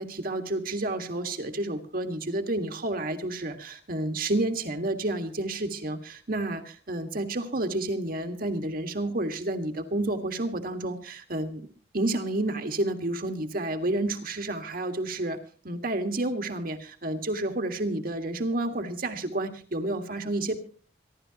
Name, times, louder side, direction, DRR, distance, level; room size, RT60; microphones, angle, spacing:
voice 1, 0.0-11.7 11.9-15.4 15.6-20.6, right 2 dB, 50° right, 6 dB, 1.8 m, -30 dB
26.5 x 12.0 x 2.9 m, 0.41 s
head